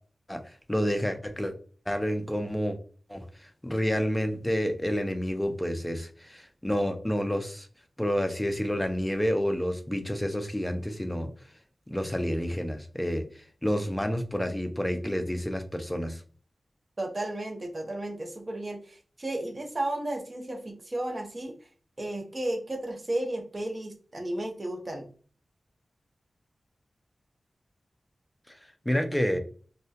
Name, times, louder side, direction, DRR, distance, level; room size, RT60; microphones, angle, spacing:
voice 1, 0.7-1.5 1.9-2.8 3.1-3.2 3.6-7.7 8.0-11.3 11.9-16.2 28.5-28.6 28.9-29.4, equal, 10° left, 7 dB, 0.4 m, -29 dB
voice 2, 17.0-21.7 22.0-25.1, right 1 dB, 35° right, 2 dB, 0.6 m, -33 dB
2.2 x 2.1 x 2.6 m, 0.42 s
wide cardioid pair, 100°, 0 cm